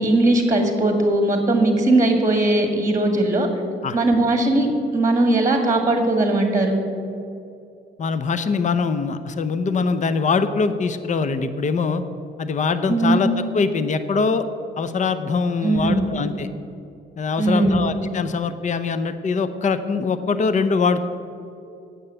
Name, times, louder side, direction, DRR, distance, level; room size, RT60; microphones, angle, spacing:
voice 1, 0.0-3.5 3.9-6.8 12.9-13.2 15.6-16.1 17.4-17.8, right 2 dB, 15° right, 4 dB, 1.7 m, -19 dB
voice 2, 8.0-12.0 12.4-14.4 14.8-16.5 17.2-21.0, left 4 dB, 40° left, 11 dB, 0.7 m, -23 dB
8.8 x 6.8 x 8.7 m, 2.6 s
cardioid pair, 90°, 20 cm